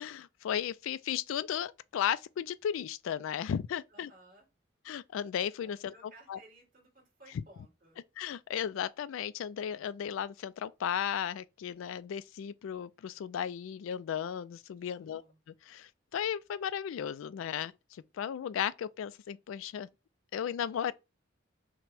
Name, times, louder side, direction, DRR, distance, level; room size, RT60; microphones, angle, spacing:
voice 1, 0.0-4.1 4.9-6.4 7.3-7.4 8.2-15.2 15.6-19.9 20.3-20.9, left 9 dB, 80° left, 0.3 m, -35 dB
voice 2, 3.9-4.5 5.6-8.0 14.9-15.4, right 2 dB, 45° right, 2.6 m, -58 dB
5.8 x 2.1 x 3.3 m
head